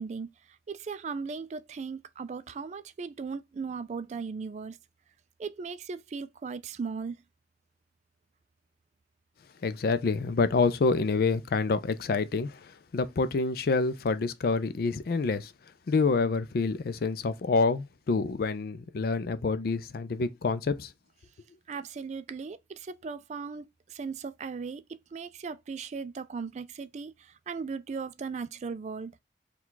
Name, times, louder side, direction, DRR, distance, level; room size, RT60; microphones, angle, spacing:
voice 1, 0.0-4.8 5.4-7.2 21.7-29.2, right 5 dB, 40° right, 0.3 m, -37 dB
voice 2, 9.6-15.5 15.9-20.9, left 4 dB, 55° left, 0.4 m, -27 dB
4.6 x 2.3 x 3.8 m
head